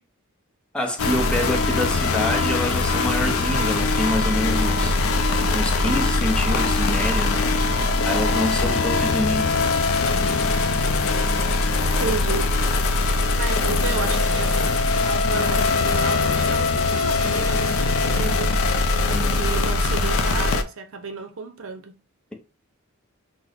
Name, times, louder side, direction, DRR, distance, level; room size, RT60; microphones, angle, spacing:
voice 1, 0.7-9.6 19.1-19.4, left 1 dB, 5° left, 0.7 m, -27 dB
sound 1, 1.0-20.6, left 3 dB, 70° left, 0.5 m, -21 dB
voice 2, 12.0-12.5 13.3-14.7 15.0-18.5 19.2-22.0, right 4 dB, 65° right, 0.6 m, -32 dB
6.0 x 2.1 x 3.4 m
head